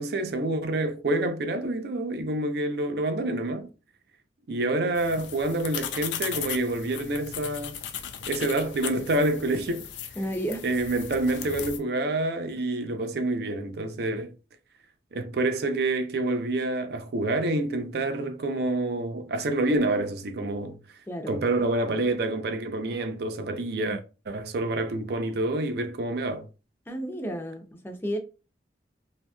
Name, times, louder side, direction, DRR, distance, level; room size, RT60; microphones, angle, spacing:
voice 1, 0.0-3.7 4.5-7.8 8.3-9.9 10.6-14.3 15.1-20.8 21.3-26.5, right 2 dB, 60° right, 0.4 m, -27 dB
sound 1, 5.0-11.8, left 8 dB, 85° left, 0.4 m, -37 dB
voice 2, 10.2-10.7 21.1-21.4 26.9-28.2, equal, 15° left, 0.4 m, -32 dB
2.7 x 2.7 x 2.2 m
head